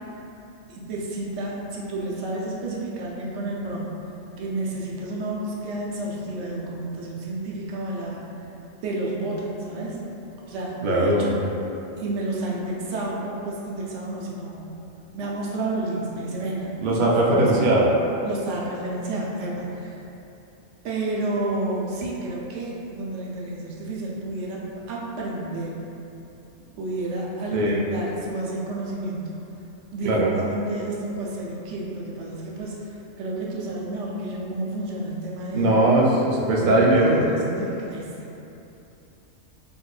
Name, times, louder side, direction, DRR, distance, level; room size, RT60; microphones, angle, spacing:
voice 1, 0.7-3.9 4.4-8.5 8.8-10.0 10.5-11.3 12.0-14.7 15.1-17.8 18.2-20.0 20.8-24.6 24.9-25.7 26.8-29.4 29.9-35.7 36.5-38.1, right 2 dB, 75° right, -4 dB, 0.9 m, -30 dB
voice 2, 10.8-11.3 16.8-17.9 27.5-27.8 30.1-30.3 35.5-37.3, right 1 dB, 60° right, -4 dB, 0.5 m, -19 dB
4.3 x 2.5 x 2.3 m, 2.9 s
omnidirectional pair, 1.3 m